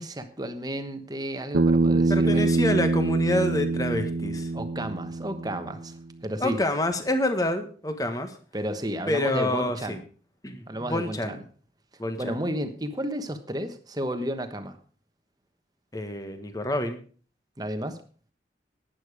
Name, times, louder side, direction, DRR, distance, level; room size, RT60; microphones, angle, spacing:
voice 1, 0.0-2.5 4.5-6.0 6.2-6.6 8.5-10.0 10.7-11.4 12.2-14.8 17.6-18.0, equal, 20° right, 8 dB, 1.2 m, -32 dB
Bass guitar, 1.5-5.9, right 3 dB, 75° right, 0.7 m, -24 dB
voice 2, 2.1-4.5 6.4-8.3 9.1-10.0 10.4-11.4 12.0-12.3 15.9-17.0, left 1 dB, 20° left, 8 dB, 1.4 m, -27 dB
12.0 x 10.5 x 4.9 m, 0.41 s
head